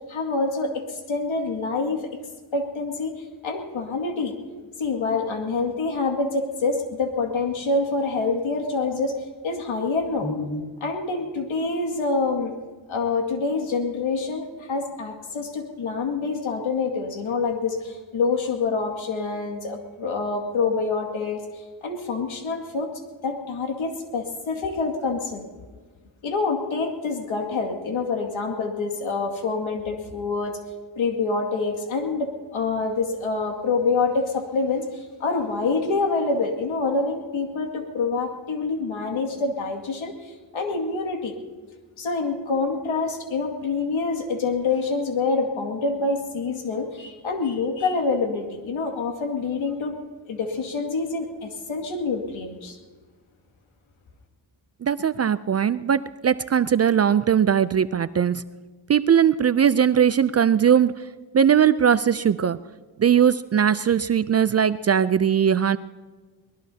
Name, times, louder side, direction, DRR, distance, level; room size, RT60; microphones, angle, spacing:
voice 1, 0.1-2.0 2.5-3.1 3.4-4.4 4.8-9.2 9.4-12.5 12.9-21.4 21.8-22.9 23.2-25.5 26.2-30.6 31.0-41.4 42.0-50.0 50.3-52.8, left 4 dB, 70° left, 3 dB, 2.3 m, -26 dB
voice 2, 54.8-58.4 58.9-60.9 61.3-62.6 63.0-65.8, right 8 dB, 35° right, 14 dB, 0.4 m, -20 dB
23.0 x 19.5 x 2.8 m, 1.4 s
cardioid pair, 80°, 49 cm